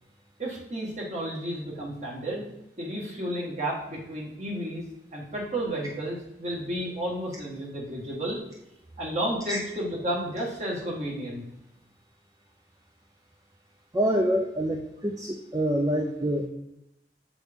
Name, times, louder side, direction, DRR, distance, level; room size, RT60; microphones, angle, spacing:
voice 1, 0.4-2.5 2.8-4.8 5.1-8.4 9.0-11.4, right 1 dB, 40° right, -2 dB, 1.6 m, -32 dB
voice 2, 13.9-16.5, equal, 20° right, 1 dB, 0.5 m, -26 dB
7.0 x 6.0 x 3.6 m, 0.84 s
head